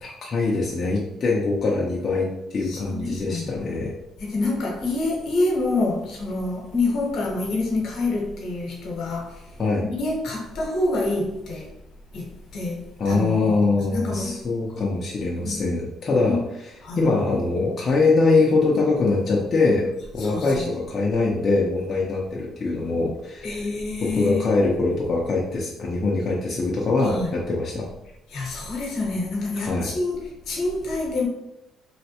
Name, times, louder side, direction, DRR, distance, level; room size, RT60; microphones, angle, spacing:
voice 1, 0.0-3.9 9.6-9.8 13.0-16.4 17.0-23.6 24.0-27.9 29.6-29.9, left 3 dB, 40° left, -3 dB, 0.5 m, -23 dB
voice 2, 2.7-3.5 4.2-9.5 9.8-11.7 12.1-13.6 13.9-14.4 15.4-15.6 16.3-16.4 16.8-17.0 20.2-20.7 23.4-24.5 27.0-27.3 28.3-31.3, left 2 dB, 70° left, -1 dB, 0.9 m, -27 dB
3.1 x 2.1 x 2.8 m, 0.88 s
cardioid pair, 130°, 0 cm